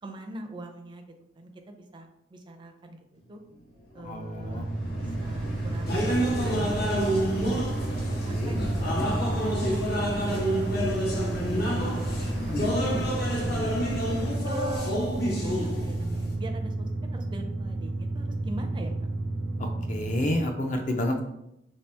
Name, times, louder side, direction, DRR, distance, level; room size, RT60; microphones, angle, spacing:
voice 1, 0.0-3.4 3.9-4.7 5.0-6.3 6.6-7.0 8.1-8.8 9.4-10.5 11.6-14.0 14.4-18.9, right 1 dB, 25° right, 4 dB, 0.4 m, -42 dB
sound 1, 3.2-14.4, left 1 dB, 90° left, 1.2 m, -36 dB
voice 2, 4.0-5.2 7.9-8.0 8.3-8.5 8.8-9.1 19.6-21.2, left 1 dB, 45° left, 3 dB, 0.5 m, -31 dB
sound 2, 4.3-20.4, right 2 dB, 85° right, 0.6 m, -32 dB
sound 3, 5.9-16.3, equal, 60° left, 0.8 m, -29 dB
2.9 x 2.8 x 3.3 m, 0.81 s
head